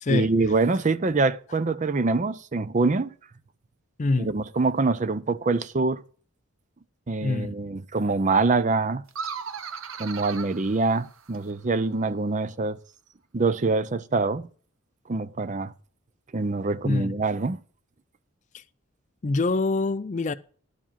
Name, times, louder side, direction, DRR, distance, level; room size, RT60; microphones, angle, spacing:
voice 1, 0.1-3.1 4.2-6.0 7.1-9.0 10.0-12.8 13.3-14.5 15.1-15.7 16.3-17.6, right 3 dB, 35° right, 0.5 m, -25 dB
voice 2, 4.0-4.3 7.2-7.5 16.8-17.1 19.2-20.3, left 3 dB, 35° left, 0.4 m, -25 dB
sound 1, 9.1-11.6, right 6 dB, 85° right, 0.8 m, -37 dB
11.0 x 4.8 x 7.3 m
head